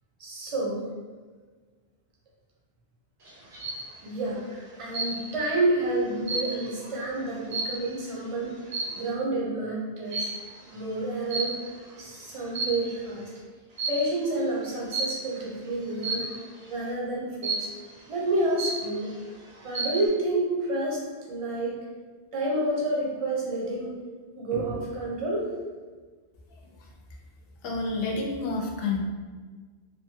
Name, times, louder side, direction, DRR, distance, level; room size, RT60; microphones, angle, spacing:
voice 1, 0.2-0.8 4.0-8.6 9.0-10.3 10.7-11.6 12.0-13.2 13.9-16.4 16.7-17.7 18.1-19.1 19.6-21.0 21.3-21.8 22.3-24.0 24.4-25.6, right 2 dB, 40° right, -4 dB, 0.6 m, -29 dB
sound 1, 3.3-3.9 4.9-5.5 5.9-8.1 8.7-9.1 10.1-10.5 11.3-11.9 12.4-13.1 13.8-14.1 14.9-15.3 16.0-16.4 17.4-17.9 18.3-18.4 18.6-19.2 19.6-20.1, right 3 dB, 75° right, 0.9 m, -32 dB
voice 2, 27.6-29.0, left 3 dB, 70° left, 0 dB, 0.7 m, -29 dB
2.9 x 2.2 x 2.7 m, 1.4 s
omnidirectional pair, 1.1 m